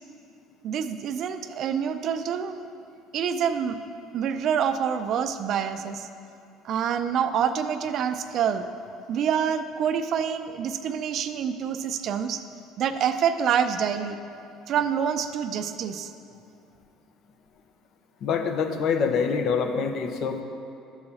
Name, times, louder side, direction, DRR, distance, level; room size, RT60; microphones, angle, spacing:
voice 1, 0.6-2.5 3.1-3.8 4.1-6.1 6.6-8.6 9.1-12.4 12.8-14.2 14.7-16.1, right 8 dB, 55° right, 10 dB, 0.5 m, -26 dB
voice 2, 18.2-20.4, left 5 dB, 60° left, 5 dB, 0.8 m, -25 dB
12.0 x 4.8 x 4.2 m, 2.6 s
supercardioid pair, 105°, 0 cm